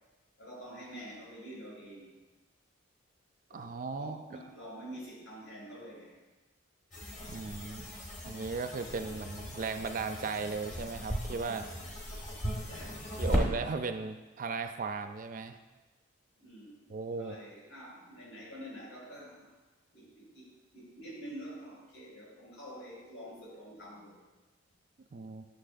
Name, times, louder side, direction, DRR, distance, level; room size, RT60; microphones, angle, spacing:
voice 1, 0.4-2.1 3.5-3.7 3.9-6.2 12.6-13.1 16.4-19.5 19.9-24.2, equal, 75° left, -4 dB, 2.5 m, -47 dB
voice 2, 3.5-4.2 7.3-7.9 8.3-11.7 13.2-15.6 16.9-17.4 25.1-25.5, right 4 dB, 40° right, 8 dB, 0.3 m, -36 dB
sound 1, 6.9-13.5, equal, 35° left, 1.2 m, -37 dB
9.9 x 6.7 x 2.6 m, 1.2 s
head